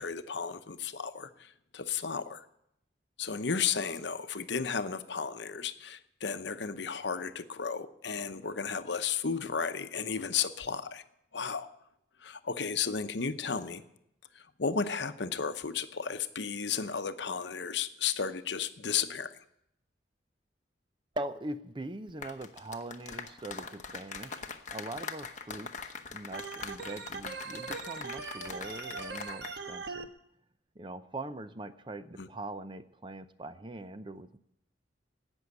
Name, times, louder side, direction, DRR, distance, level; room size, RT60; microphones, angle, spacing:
voice 1, 0.0-2.4 3.2-11.0 11.3-11.7 12.2-13.8 14.3-19.3 32.2-32.3, left 6 dB, 70° left, 10 dB, 0.8 m, -34 dB
voice 2, 21.2-24.5 24.7-30.1 30.8-34.4, right 2 dB, 25° right, 12 dB, 0.6 m, -42 dB
sound 1, 22.1-29.6 29.8-30.1, left 5 dB, 40° left, 1.0 m, -43 dB
Organ, 26.3-30.0, right 4 dB, 70° right, 1.2 m, -40 dB
17.0 x 6.3 x 9.6 m, 0.77 s
head